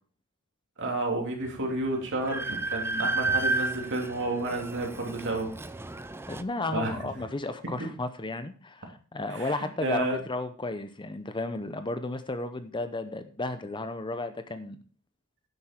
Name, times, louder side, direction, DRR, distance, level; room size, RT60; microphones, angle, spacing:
voice 1, 0.8-5.5 6.7-7.1 7.8-7.9 9.3-9.5 9.8-10.2, right 2 dB, 60° right, 1 dB, 3.0 m, -31 dB
Train, 1.5-1.6 1.9-6.4, right 3 dB, 10° right, 0.5 m, -32 dB
voice 2, 6.3-14.8, left 2 dB, 20° left, 10 dB, 0.8 m, -33 dB
10.5 x 8.0 x 4.4 m, 0.39 s
head